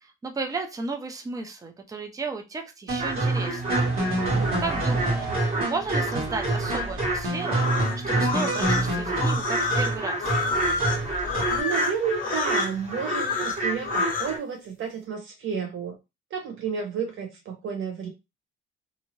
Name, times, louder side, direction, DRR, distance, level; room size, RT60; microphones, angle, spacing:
voice 1, 0.0-3.9 4.6-5.1 5.7-10.3, right 3 dB, 15° right, 4 dB, 0.4 m, -34 dB
sound 1, 2.9-11.6, right 2 dB, 90° right, 1.4 m, -27 dB
sound 2, 3.0-14.4, right 1 dB, 30° right, 1.0 m, -31 dB
voice 2, 4.3-4.7 11.5-16.0 16.3-18.1, right 6 dB, 70° right, 3 dB, 0.7 m, -31 dB
sound 3, 7.5-14.4, left 4 dB, 40° left, 0.6 m, -29 dB
2.6 x 2.5 x 3.0 m, 0.25 s
cardioid pair, 155°, 21 cm